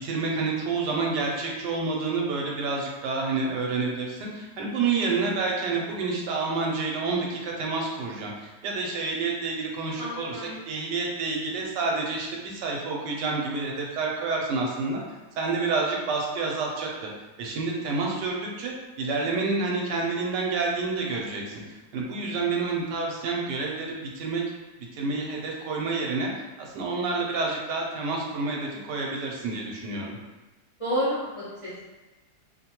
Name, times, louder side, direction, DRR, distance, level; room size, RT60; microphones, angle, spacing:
voice 1, 0.0-15.0 15.4-17.1 17.4-24.4 24.9-30.2, right 3 dB, 75° right, -1 dB, 1.1 m, -29 dB
voice 2, 10.0-10.5 30.8-31.9, equal, 45° left, -11 dB, 0.4 m, -30 dB
2.8 x 2.1 x 2.8 m, 1.1 s
omnidirectional pair, 1.9 m